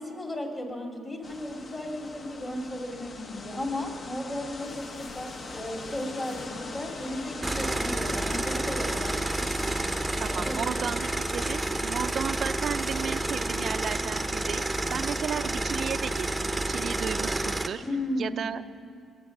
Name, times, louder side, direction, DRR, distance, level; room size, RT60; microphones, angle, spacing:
voice 1, 0.0-9.6 10.3-10.8 14.7-15.0 17.8-18.4, left 1 dB, 25° left, 2 dB, 2.5 m, -35 dB
sound 1, 1.2-17.9, left 3 dB, 40° left, 0.8 m, -43 dB
sound 2, 4.5-17.7, left 2 dB, 75° left, 2.1 m, -52 dB
sound 3, 7.4-17.7, right 2 dB, 10° right, 0.7 m, -30 dB
voice 2, 10.2-17.8 18.2-18.6, right 7 dB, 55° right, 11 dB, 0.4 m, -34 dB
22.5 x 7.5 x 7.2 m, 2.2 s
cardioid pair, 90°, 0 cm